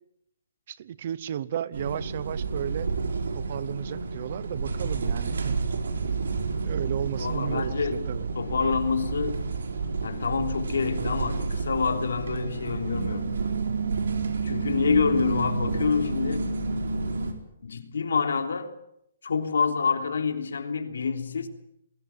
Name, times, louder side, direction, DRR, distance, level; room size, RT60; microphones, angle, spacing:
voice 1, 0.7-2.9 3.3-5.6 6.5-8.3, right 10 dB, 40° right, 19 dB, 0.9 m, -34 dB
sound 1, 1.7-17.3, right 4 dB, 85° right, 4.3 m, -30 dB
voice 2, 7.2-8.1 8.3-9.5 10.0-13.5 14.4-16.5 17.6-18.7 19.2-21.5, left 5 dB, 85° left, 7 dB, 3.4 m, -27 dB
22.5 x 17.5 x 9.6 m, 0.76 s
hypercardioid pair, 170°, 0 cm